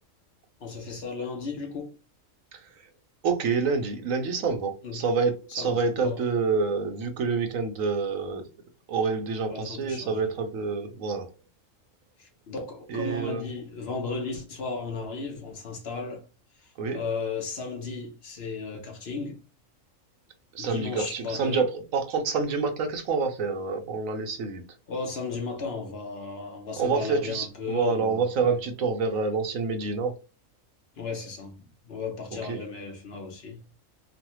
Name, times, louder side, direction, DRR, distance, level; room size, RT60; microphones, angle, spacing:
voice 1, 0.6-2.0 4.8-5.0 5.6-6.2 9.5-10.3 11.0-11.1 12.2-16.2 16.6-19.4 20.6-21.6 24.9-28.5 31.0-33.6, left 4 dB, 55° left, 1.0 m, -35 dB
voice 2, 3.2-8.4 8.9-11.3 12.9-13.4 16.8-17.0 20.5-24.6 26.8-30.1 32.4-32.6, right 4 dB, 90° right, 1.1 m, -27 dB
3.1 x 2.1 x 2.9 m
omnidirectional pair, 1.3 m